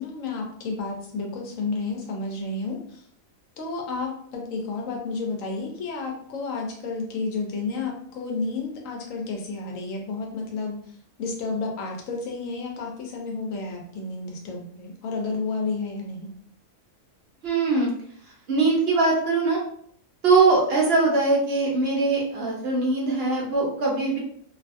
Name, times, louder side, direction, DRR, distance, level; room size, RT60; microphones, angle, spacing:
voice 1, 0.0-3.0 3.6-10.8 11.2-16.3, left 3 dB, 80° left, 1 dB, 1.1 m, -31 dB
voice 2, 17.4-17.9 18.5-19.6 20.2-24.2, right 3 dB, 55° right, -3 dB, 0.8 m, -21 dB
2.6 x 2.5 x 2.4 m, 0.62 s
omnidirectional pair, 1.4 m